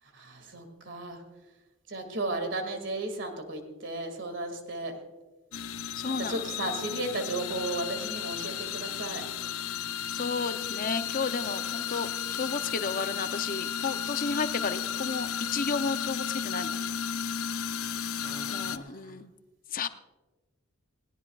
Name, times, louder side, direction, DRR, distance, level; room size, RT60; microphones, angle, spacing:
voice 1, 0.0-1.2 1.9-4.9 6.0-9.3 18.1-19.2, right 2 dB, 60° right, 5 dB, 2.2 m, -35 dB
sound 1, 5.5-18.8, left 8 dB, 85° left, 0.6 m, -34 dB
voice 2, 6.0-6.4 10.1-16.8 18.5-19.3 19.7-19.9, left 4 dB, 40° left, 10 dB, 0.6 m, -32 dB
20.0 x 18.0 x 2.4 m, 1.2 s
head